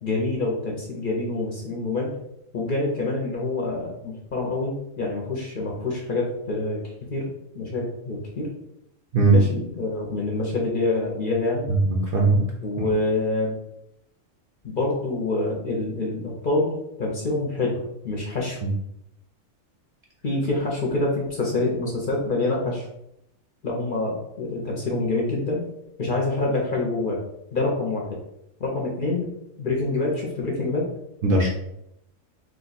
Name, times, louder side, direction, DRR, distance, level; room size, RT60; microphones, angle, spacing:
voice 1, 0.0-2.2 2.5-6.8 7.1-7.3 7.5-8.5 9.3-11.7 12.6-13.6 14.6-18.6 20.2-22.9 23.6-25.6 26.0-27.2 27.5-28.2 28.6-29.3 29.6-30.9, left 2 dB, 50° left, -2 dB, 0.7 m, -26 dB
voice 2, 11.8-12.4 31.2-31.5, right 3 dB, 55° right, -2 dB, 0.6 m, -19 dB
2.8 x 2.2 x 3.9 m, 0.80 s
omnidirectional pair, 1.4 m